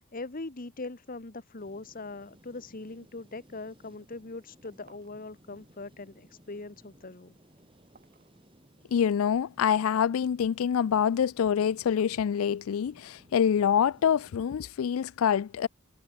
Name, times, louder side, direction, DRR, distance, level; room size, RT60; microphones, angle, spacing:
voice 1, 0.1-7.4, left 3 dB, 40° left, 1.1 m, -41 dB
sound 1, 1.6-14.6, equal, 25° right, 5.1 m, -60 dB
sound 2, 3.5-3.8 4.1-5.2 5.5-6.2 6.5-9.0, right 4 dB, 45° right, 7.8 m, -65 dB
voice 2, 8.9-15.7, left 8 dB, 85° left, 0.4 m, -26 dB
head